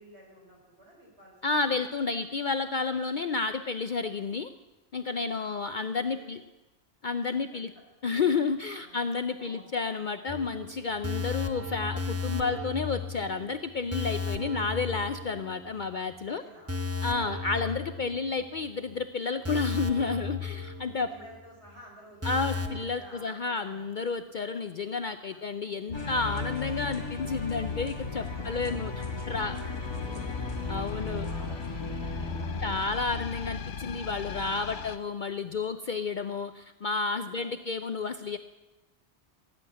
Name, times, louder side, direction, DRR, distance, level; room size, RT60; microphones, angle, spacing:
voice 1, 0.0-1.3 1.6-1.9 5.1-5.7 6.1-6.4 7.3-7.6 8.8-9.0 9.4-9.7 16.2-16.7 21.1-22.6 22.9-23.9 25.3-25.4 28.2-28.9 29.3-30.5 30.9-33.1 34.6-34.8 37.2-37.7, equal, 65° right, -1 dB, 4.7 m, -53 dB
voice 2, 1.4-4.5 4.9-6.4 7.0-7.7 8.0-16.4 17.0-21.1 22.2-28.9 29.3-29.6 30.7-31.3 32.6-38.4, left 4 dB, 50° left, 10 dB, 0.7 m, -31 dB
sound 1, 10.3-15.8 16.1-16.2 16.7-18.6 18.9-19.0 19.4-21.4 21.7-21.8 22.2-22.8, left 4 dB, 15° right, 0.9 m, -35 dB
sound 2, 25.9-35.0, left 5 dB, 85° left, 1.1 m, -37 dB
sound 3, 25.9-32.8, left 2 dB, 20° left, 1.7 m, -38 dB
16.5 x 8.6 x 8.8 m, 1.0 s
omnidirectional pair, 1.2 m